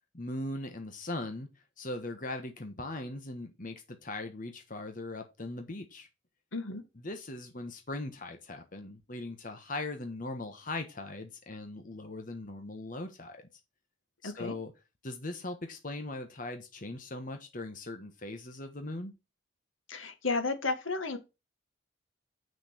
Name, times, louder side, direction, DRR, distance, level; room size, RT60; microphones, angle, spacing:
voice 1, 0.1-1.5 1.8-6.1 7.0-13.4 14.2-14.7 15.0-19.1, left 2 dB, 40° left, 1.3 m, -39 dB
voice 2, 6.5-6.8 14.2-14.6 19.9-21.2, left 3 dB, 75° left, 1.7 m, -33 dB
7.9 x 6.4 x 4.4 m
head